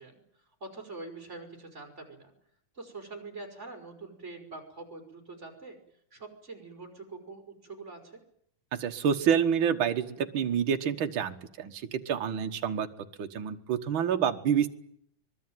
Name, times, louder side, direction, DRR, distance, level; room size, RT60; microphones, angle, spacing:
voice 1, 0.0-2.3 2.7-5.8 6.1-8.2, right 3 dB, 20° right, 3 dB, 5.3 m, -44 dB
voice 2, 8.7-12.9 13.2-14.7, right 8 dB, 50° right, 5 dB, 1.9 m, -28 dB
24.5 x 21.5 x 9.3 m, 0.71 s
omnidirectional pair, 3.4 m